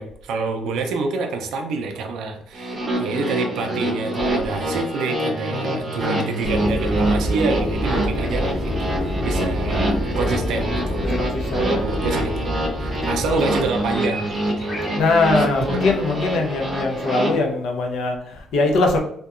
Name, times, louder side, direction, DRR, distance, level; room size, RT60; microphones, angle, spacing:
voice 1, 0.0-11.2 11.8-14.8 15.4-15.8, right 3 dB, 75° right, 4 dB, 0.3 m, -27 dB
sound 1, 2.5-17.3, right 1 dB, 25° right, 0.7 m, -26 dB
voice 2, 5.5-5.9 11.1-12.2 14.9-19.0, left 3 dB, 70° left, 2 dB, 0.5 m, -22 dB
sound 2, 6.4-17.0, equal, 30° left, 0.7 m, -28 dB
2.7 x 2.2 x 2.3 m, 0.69 s
cardioid pair, 150°, 0 cm